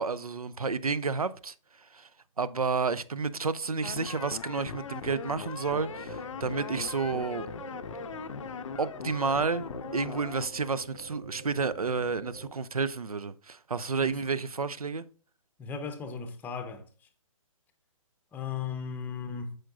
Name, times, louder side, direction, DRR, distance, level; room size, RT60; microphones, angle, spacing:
voice 1, 0.0-1.5 1.9-2.1 2.4-7.5 8.8-15.1, right 4 dB, 90° right, 0.5 m, -31 dB
sound 1, 3.8-10.5, left 7 dB, 60° left, 0.5 m, -40 dB
sound 2, 5.7-12.5, right 3 dB, 25° right, 1.3 m, -46 dB
voice 2, 15.6-16.9 18.3-19.6, left 6 dB, 10° left, 0.7 m, -36 dB
8.8 x 6.4 x 2.4 m
figure-of-eight pair, 130°, 18 cm